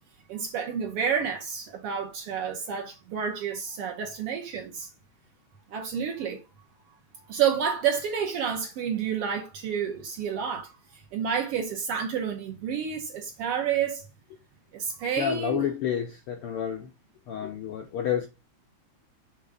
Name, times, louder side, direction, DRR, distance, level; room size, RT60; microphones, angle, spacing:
voice 1, 0.3-4.9 5.7-6.4 7.2-14.1 14.7-15.7, right 7 dB, 65° right, 1.5 m, -30 dB
voice 2, 15.2-16.9 17.3-18.3, left 9 dB, 75° left, 1.3 m, -29 dB
6.5 x 3.1 x 4.9 m
omnidirectional pair, 3.3 m